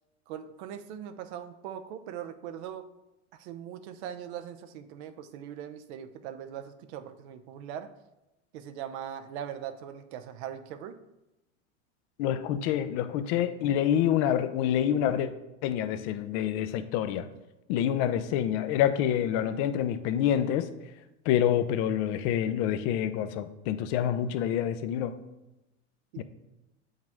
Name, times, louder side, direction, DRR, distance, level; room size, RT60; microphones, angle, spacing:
voice 1, 0.3-2.9 3.3-7.9 8.5-11.0 26.1-26.2, right 9 dB, 65° right, 9 dB, 0.8 m, -40 dB
voice 2, 12.2-15.3 15.6-17.3 17.7-20.7 21.2-25.2 26.2-26.3, left 10 dB, 55° left, 12 dB, 0.7 m, -27 dB
7.7 x 5.5 x 3.6 m, 0.96 s
supercardioid pair, 120°, 35 cm